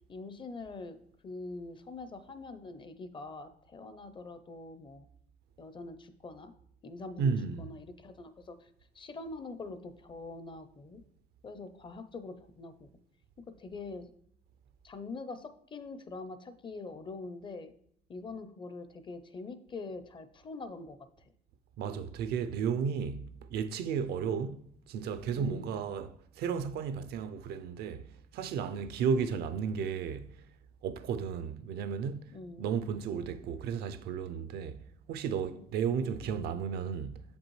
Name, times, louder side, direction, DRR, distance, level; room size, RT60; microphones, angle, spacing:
voice 1, 0.1-1.0 1.2-5.1 5.6-6.5 6.8-8.7 8.9-11.0 11.4-12.9 13.5-14.1 14.8-17.7 18.1-21.0 25.4-25.8 32.3-32.7 35.5-35.7, left 3 dB, 30° left, 0.5 m, -44 dB
voice 2, 7.2-7.7 21.8-28.1 28.3-30.3 30.8-32.3 32.6-34.8 35.1-37.2, right 6 dB, 70° right, 0.5 m, -33 dB
6.9 x 5.2 x 3.1 m
cardioid pair, 110°, 17 cm